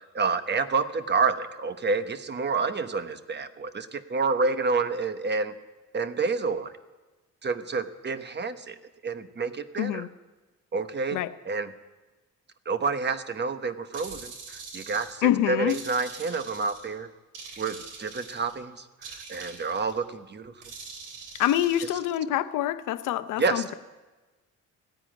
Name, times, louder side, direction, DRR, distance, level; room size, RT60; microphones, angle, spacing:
voice 1, 0.1-5.6 5.9-6.7 7.4-8.8 9.0-10.1 10.7-11.7 12.7-17.1 17.6-20.5 23.4-23.6, right 4 dB, 35° right, 11 dB, 1.1 m, -29 dB
voice 2, 9.8-10.1 11.1-11.3 15.2-15.8 21.4-23.7, left 12 dB, 90° left, 13 dB, 0.7 m, -26 dB
sound 1, 13.9-15.2 15.7-16.9 17.3-18.6 19.0-20.0 20.6-21.9, right 4 dB, 75° right, 3.1 m, -43 dB
15.5 x 9.9 x 9.0 m, 1.2 s
cardioid pair, 90°, 30 cm